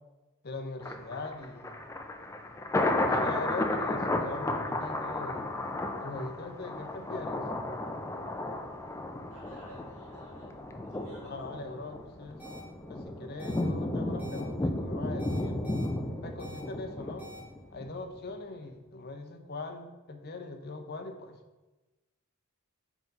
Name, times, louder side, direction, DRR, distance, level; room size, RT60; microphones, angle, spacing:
voice 1, 0.4-1.8 2.8-5.4 6.0-7.5 11.2-12.5 12.9-15.6 16.2-17.3 17.7-21.4, left 2 dB, 45° left, 5 dB, 0.7 m, -41 dB
Thunder, 0.8-17.9 18.3-18.4, left 2 dB, 15° left, 0.3 m, -33 dB
voice 2, 9.3-10.5 10.8-11.7, right 1 dB, 80° right, -10 dB, 2.0 m, -52 dB
sound 1, 12.4-12.6 13.4-13.6 14.2-14.4 15.2-15.9 16.4-16.6 17.2-17.4, right 2 dB, 10° right, 1.5 m, -47 dB
4.8 x 3.9 x 5.3 m, 1.1 s
head